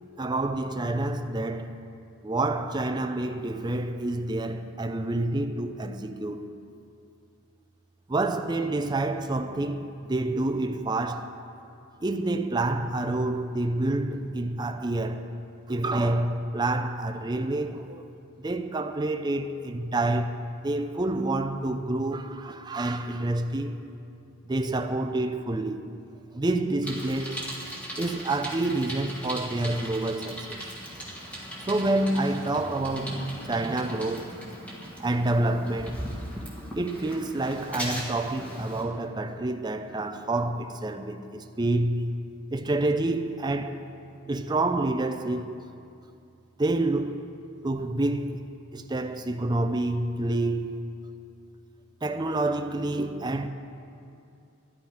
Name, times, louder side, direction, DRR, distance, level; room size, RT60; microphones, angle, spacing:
voice 1, 0.2-1.7 2.2-6.5 8.1-11.3 12.0-15.3 15.7-18.1 18.4-23.8 24.5-25.9 26.3-27.4 28.0-30.7 31.7-34.4 35.0-36.0 36.8-42.2 42.5-43.8 44.3-45.6 46.6-47.2 47.6-48.5 48.7-50.8 52.0-53.5, right 2 dB, 20° right, 0.5 m, -28 dB
Bicycle, 26.8-38.8, equal, 5° left, 1.6 m, -39 dB
sound 1, 30.3-35.0, equal, 30° left, 2.4 m, -45 dB
12.0 x 11.0 x 4.9 m
head